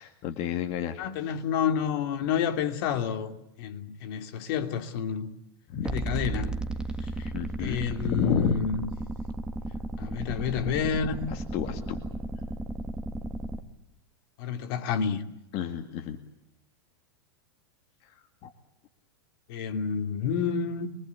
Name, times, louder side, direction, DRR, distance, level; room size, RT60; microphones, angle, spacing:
voice 1, 0.0-1.3 5.7-5.9 7.3-8.6 11.3-12.0 15.5-16.2 18.0-18.5, left 9 dB, 45° left, 2.1 m, -31 dB
voice 2, 1.0-5.3 5.8-6.6 7.0-7.3 7.6-8.9 10.0-11.2 14.4-15.2 19.5-21.0, left 7 dB, 60° left, 2.7 m, -29 dB
sound 1, 5.9-13.6, right 2 dB, 5° right, 1.8 m, -34 dB
25.0 x 23.0 x 8.3 m
supercardioid pair, 130°, 14 cm